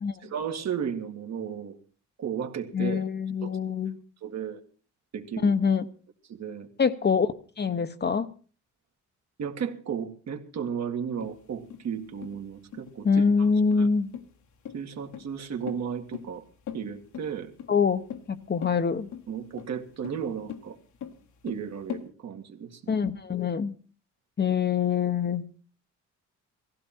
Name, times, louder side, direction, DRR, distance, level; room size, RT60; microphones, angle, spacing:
voice 1, 0.2-1.8 2.2-3.0 3.4-3.6 4.2-4.6 5.1-5.5 6.3-6.7 9.4-13.1 13.4-13.5 13.8-13.9 14.7-16.4 16.7-17.5 19.3-20.8 21.4-22.9, right 7 dB, 60° right, 2.0 m, -34 dB
voice 2, 2.7-4.0 5.4-5.9 6.8-7.3 7.6-8.3 13.0-14.1 17.7-18.0 18.3-19.1 22.9-23.7 24.4-25.5, left 6 dB, 35° left, 1.0 m, -24 dB
sound 1, 11.2-22.1, left 8 dB, 75° left, 1.8 m, -41 dB
17.5 x 15.5 x 4.4 m
cardioid pair, 90°, 30 cm